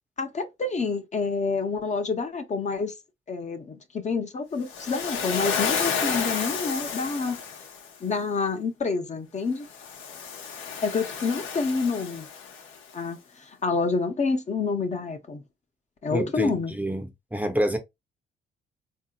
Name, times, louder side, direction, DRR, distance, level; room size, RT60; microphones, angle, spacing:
voice 1, 0.2-2.9 3.3-7.4 8.0-9.7 10.8-12.3 12.9-15.4 16.0-16.7, left 4 dB, 35° left, 0.7 m, -28 dB
Waves surf, 4.7-7.9 9.7-12.8, left 6 dB, 85° left, 0.8 m, -31 dB
voice 2, 16.1-17.8, right 1 dB, 10° right, 0.6 m, -28 dB
3.6 x 2.7 x 2.2 m
cardioid pair, 90°, 20 cm